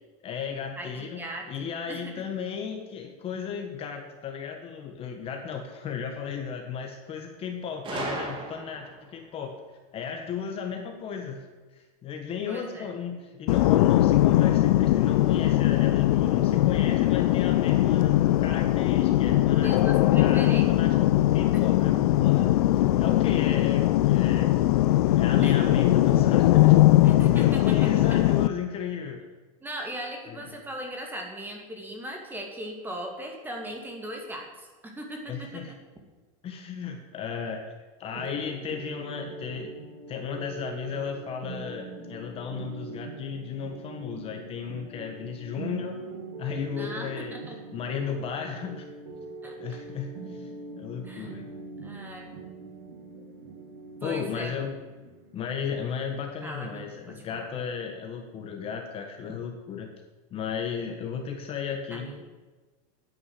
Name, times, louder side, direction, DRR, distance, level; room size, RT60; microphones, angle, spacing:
voice 1, 0.2-9.5 9.9-11.5 11.7-18.1 18.4-22.5 23.0-24.5 25.1-26.8 27.3-29.2 30.3-30.4 35.3-35.7 36.4-37.6 38.0-39.8 40.1-46.1 46.4-47.4 47.7-48.9 49.6-50.5 50.8-51.5 54.0-54.7 55.3-59.9 60.3-62.1, left 7 dB, 30° left, 4 dB, 1.5 m, -35 dB
voice 2, 0.8-1.5 1.9-2.0 12.5-12.9 19.6-20.7 21.5-21.6 25.4-25.6 27.0-27.9 29.6-35.8 46.8-47.6 49.4-49.6 51.0-51.3 51.8-52.3 54.0-54.5 56.4-57.4 61.9-62.2, right 1 dB, 10° right, 2 dB, 2.4 m, -38 dB
Gunshot gunfire, 7.8-9.1, right 3 dB, 25° right, 2.6 m, -34 dB
sound 1, 13.5-28.5, left 15 dB, 80° left, 0.6 m, -20 dB
sound 2, 38.1-57.7, right 3 dB, 60° right, 3.8 m, -42 dB
9.9 x 9.5 x 7.8 m, 1.3 s
supercardioid pair, 140°, 19 cm